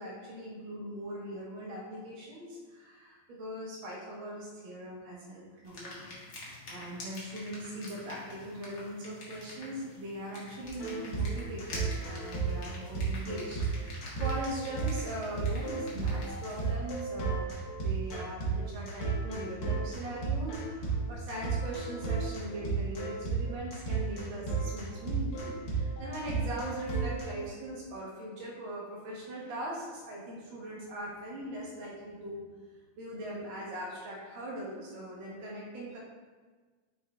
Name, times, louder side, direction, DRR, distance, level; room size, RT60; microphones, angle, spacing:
voice 1, 0.0-6.1 6.7-17.5 17.8-32.4 33.0-36.0, right 1 dB, 50° right, -4 dB, 1.7 m, -40 dB
sound 1, 5.6-16.7, left 2 dB, 50° left, 1.1 m, -47 dB
sound 2, 10.7-27.5, right 4 dB, 70° left, 0.8 m, -33 dB
6.5 x 4.6 x 3.4 m, 1.4 s
omnidirectional pair, 3.6 m